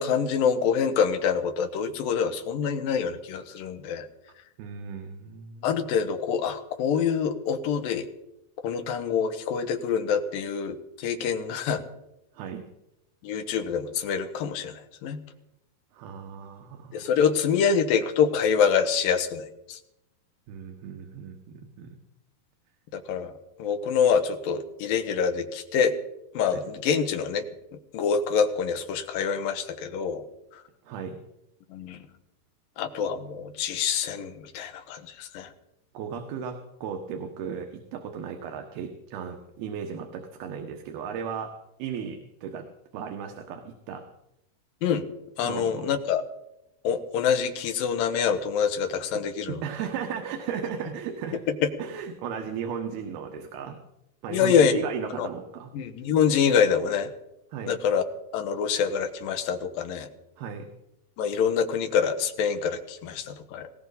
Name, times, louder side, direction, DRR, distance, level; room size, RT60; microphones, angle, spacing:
voice 1, 0.0-4.1 5.6-8.1 8.6-11.8 13.2-15.2 16.9-19.8 22.9-23.3 23.6-25.9 26.3-27.4 27.9-30.2 30.5-30.6 31.7-32.0 32.8-35.5 44.8-45.0 45.4-46.2 46.8-49.6 51.5-51.7 54.3-54.8 55.1-55.3 55.7-57.1 57.7-58.1 58.3-60.1 61.2-63.7, left 7 dB, 70° left, 7 dB, 3.0 m, -26 dB
voice 2, 4.6-5.7 12.3-12.6 15.9-17.1 20.5-21.9 26.5-26.7 30.8-31.2 35.9-41.5 41.8-42.7 42.9-44.0 45.4-45.9 49.5-51.4 51.8-53.8 54.2-55.7 57.5-57.8 60.4-60.7, right 7 dB, 85° right, 4 dB, 3.3 m, -35 dB
19.5 x 18.0 x 4.1 m, 0.86 s
omnidirectional pair, 4.3 m